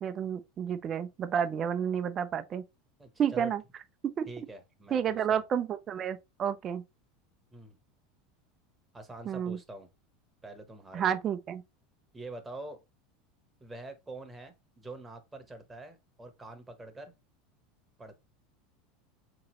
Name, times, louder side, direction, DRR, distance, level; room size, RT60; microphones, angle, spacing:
voice 1, 0.0-2.6 3.2-3.6 4.0-4.3 4.9-6.8 9.3-9.6 10.9-11.6, right 8 dB, 35° right, 0.5 m, -30 dB
voice 2, 3.0-3.5 4.3-5.4 7.5-7.8 8.9-9.9 10.4-11.2 12.1-12.8 13.6-17.1 18.0-18.2, right 2 dB, 15° right, 1.0 m, -45 dB
3.7 x 3.0 x 3.0 m
hypercardioid pair, 100°, 0 cm